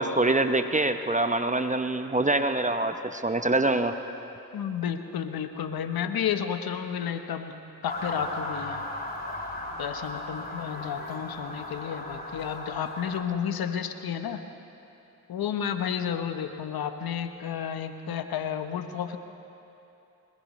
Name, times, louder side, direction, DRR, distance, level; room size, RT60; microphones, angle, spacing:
voice 1, 0.0-4.0, right 2 dB, 20° right, 8 dB, 0.8 m, -25 dB
voice 2, 4.5-7.5 7.8-8.8 9.8-14.4 15.3-19.2, left 8 dB, 65° left, 8 dB, 1.1 m, -31 dB
Motor vehicle (road) / Siren, 7.9-13.2, left 2 dB, 25° left, 2.7 m, -36 dB
21.5 x 20.5 x 3.2 m, 2.9 s
supercardioid pair, 40°, 39 cm